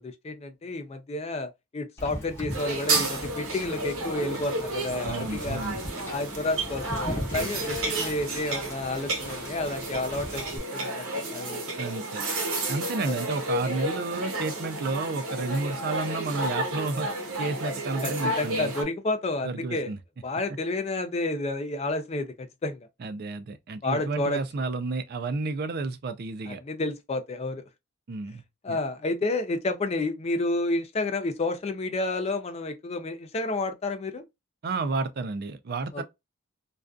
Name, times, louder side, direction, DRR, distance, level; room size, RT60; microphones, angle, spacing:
voice 1, 0.0-5.6 6.1-11.6 13.0-13.2 18.0-19.9 20.2-22.9 23.8-24.4 26.5-27.6 28.6-34.2 35.9-36.0, left 2 dB, 30° left, 0.3 m, -30 dB
Wind / Boat Water vehicle, 2.0-10.6, equal, 10° left, 0.8 m, -39 dB
sound 1, 2.5-18.8, right 2 dB, 85° right, 1.0 m, -31 dB
voice 2, 5.0-5.8 7.4-7.5 11.8-12.2 12.7-17.1 17.4-18.7 19.4-20.0 23.0-26.6 28.1-28.8 34.6-36.0, right 3 dB, 45° right, 0.4 m, -31 dB
2.5 x 2.3 x 2.2 m
head